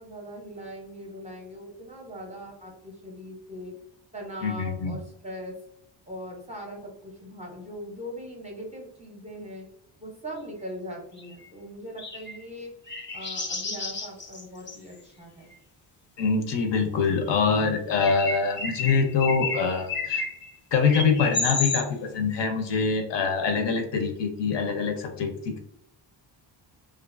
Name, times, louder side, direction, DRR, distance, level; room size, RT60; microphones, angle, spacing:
voice 1, 0.0-3.7 4.1-5.6 6.1-9.7 10.0-12.7 13.1-15.5, equal, 15° right, -1 dB, 0.6 m, -40 dB
voice 2, 4.4-5.0 16.2-20.3 20.7-25.6, left 5 dB, 65° left, 5 dB, 0.7 m, -25 dB
sound 1, 11.2-11.5 12.0-12.4 12.9-14.8 18.0-20.5 20.9-21.9, left 4 dB, 25° left, 0.4 m, -31 dB
2.5 x 2.4 x 2.4 m, 0.73 s
cardioid pair, 120°, 46 cm